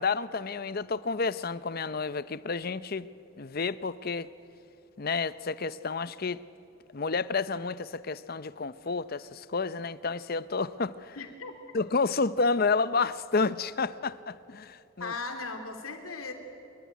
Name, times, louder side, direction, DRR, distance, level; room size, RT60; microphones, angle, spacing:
voice 1, 0.0-3.1 3.4-4.3 5.0-6.4 6.9-11.2 11.7-15.1, left 4 dB, 45° left, 16 dB, 0.7 m, -30 dB
voice 2, 11.2-11.5 15.0-16.3, left 3 dB, 90° left, 5 dB, 3.2 m, -37 dB
26.0 x 22.5 x 9.5 m, 2.7 s
head